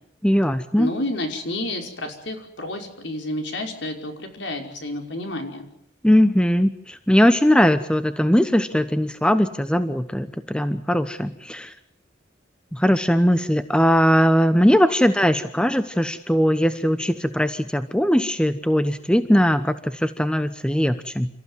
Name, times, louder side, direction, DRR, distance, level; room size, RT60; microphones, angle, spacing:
voice 1, 0.2-0.9 6.0-11.7 12.7-21.3, equal, 5° left, 10 dB, 0.9 m, -20 dB
voice 2, 0.8-5.7, left 1 dB, 70° left, 3 dB, 5.4 m, -30 dB
28.5 x 15.0 x 9.6 m, 0.70 s
head